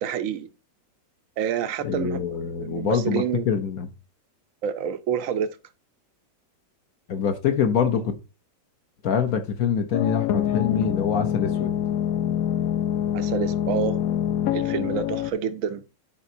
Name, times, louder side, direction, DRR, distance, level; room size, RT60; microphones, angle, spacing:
voice 1, 0.0-0.5 1.4-3.5 4.6-5.5 13.1-14.0 14.5-15.8, right 8 dB, 70° right, 0.8 m, -28 dB
voice 2, 1.8-3.9 7.1-8.2 9.0-11.8, left 7 dB, 55° left, 1.1 m, -25 dB
sound 1, 9.9-15.3, left 10 dB, 75° left, 0.8 m, -25 dB
11.5 x 4.9 x 2.7 m
omnidirectional pair, 2.1 m